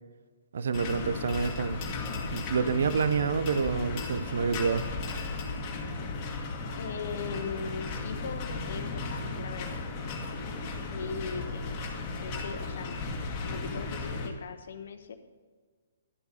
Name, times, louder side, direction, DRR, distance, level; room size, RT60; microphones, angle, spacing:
voice 1, 0.5-1.8 2.3-4.8, right 5 dB, 60° right, 12 dB, 0.7 m, -28 dB
sound 1, 0.7-14.3, left 3 dB, 30° left, 2.2 m, -35 dB
voice 2, 6.8-9.8 10.9-11.7 12.0-13.0 13.4-15.2, left 6 dB, 60° left, 9 dB, 1.1 m, -39 dB
12.5 x 8.1 x 5.1 m, 1.5 s
figure-of-eight pair, 125°, 0 cm